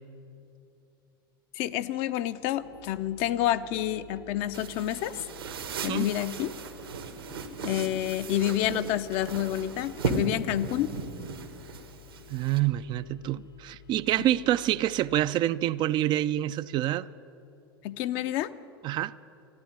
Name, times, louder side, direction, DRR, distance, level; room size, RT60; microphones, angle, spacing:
voice 1, 1.5-5.2 5.8-6.5 7.6-10.9 14.2-14.3 17.8-18.5, left 12 dB, 50° left, 12 dB, 0.6 m, -29 dB
sound 1, 2.5-15.3, left 6 dB, 65° left, 1.3 m, -50 dB
sound 2, 4.5-12.6, right 4 dB, 75° right, 1.4 m, -37 dB
voice 2, 12.3-17.1 18.8-19.1, right 13 dB, 35° right, 15 dB, 0.4 m, -27 dB
14.0 x 10.5 x 9.4 m, 2.7 s
figure-of-eight pair, 85°, 12 cm